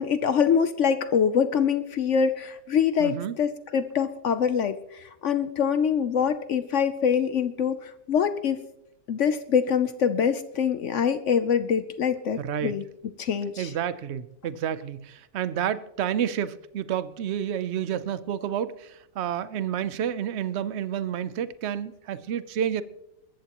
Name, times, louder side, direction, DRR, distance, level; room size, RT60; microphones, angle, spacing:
voice 1, 0.0-8.6 9.1-12.8 13.2-13.7, left 7 dB, 60° left, 0.8 m, -24 dB
voice 2, 3.0-3.4 12.4-12.8 13.6-22.8, right 9 dB, 60° right, 0.8 m, -30 dB
21.5 x 14.0 x 3.0 m
omnidirectional pair, 1.7 m